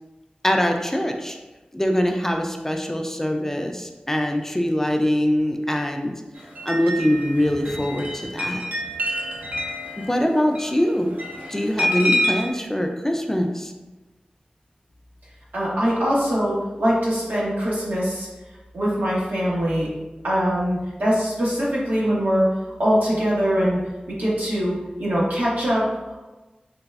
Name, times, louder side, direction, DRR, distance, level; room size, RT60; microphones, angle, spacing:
voice 1, 0.4-1.4 1.7-6.1 6.7-8.6 10.0-11.1 11.5-13.7, equal, 15° left, 3 dB, 0.3 m, -23 dB
sound 1, 6.4-12.5, equal, 65° right, 0.6 m, -28 dB
voice 2, 15.5-18.3 18.7-19.9 20.2-22.4 22.8-23.8 24.1-25.9, equal, 80° right, -7 dB, 1.3 m, -22 dB
3.9 x 3.3 x 2.3 m, 1.1 s
wide cardioid pair, 85°, 3 cm